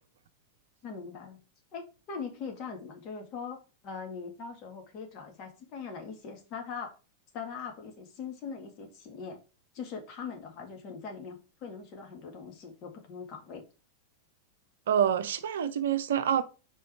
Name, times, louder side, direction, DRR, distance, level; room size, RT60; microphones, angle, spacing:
voice 1, 0.8-1.4 1.7-6.9 7.3-9.4 9.7-13.6, left 5 dB, 40° left, 2.0 m, -41 dB
voice 2, 14.9-16.4, right 9 dB, 60° right, 0.6 m, -26 dB
5.0 x 4.8 x 4.6 m
figure-of-eight pair, 90°, 0 cm